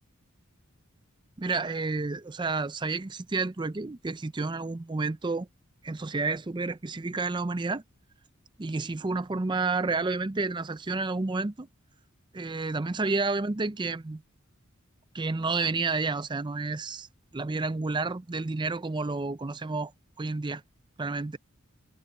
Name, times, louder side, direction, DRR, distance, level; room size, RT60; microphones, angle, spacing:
voice 1, 1.4-5.5 5.8-7.8 8.6-11.7 12.3-14.2 15.1-17.1 17.3-19.9 20.2-20.6 21.0-21.4, right 3 dB, 20° right, 0.5 m, -30 dB
head